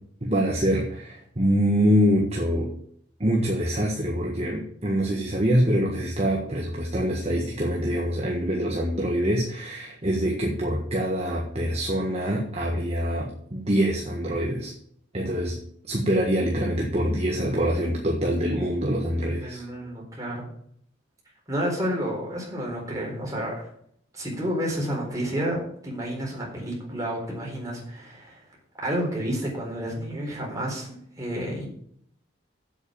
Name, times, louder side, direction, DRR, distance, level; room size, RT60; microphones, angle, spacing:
voice 1, 0.2-2.7 3.2-14.7 15.1-15.6 15.8-19.6, equal, 35° right, -1 dB, 1.6 m, -25 dB
voice 2, 19.3-20.5 21.5-23.7 24.1-28.4 28.8-31.7, equal, 15° right, -2 dB, 4.2 m, -30 dB
8.1 x 7.6 x 7.0 m, 0.65 s
head